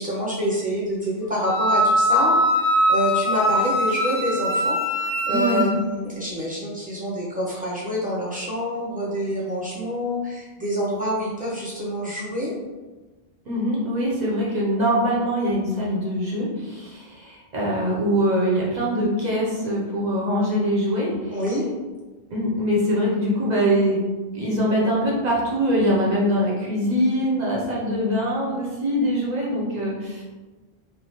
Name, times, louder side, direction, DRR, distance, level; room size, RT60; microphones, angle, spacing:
voice 1, 0.0-2.4 2.6-4.8 5.1-12.5 21.3-21.7, equal, 10° right, -8 dB, 0.7 m, -27 dB
Wind instrument woodwind instrument, 1.4-5.7, equal, 45° left, 0.8 m, -21 dB
voice 2, 5.3-5.7 13.5-21.4 22.3-24.0 24.3-30.2, equal, 50° right, -5 dB, 0.7 m, -23 dB
3.2 x 2.1 x 2.8 m, 1.2 s
omnidirectional pair, 1.0 m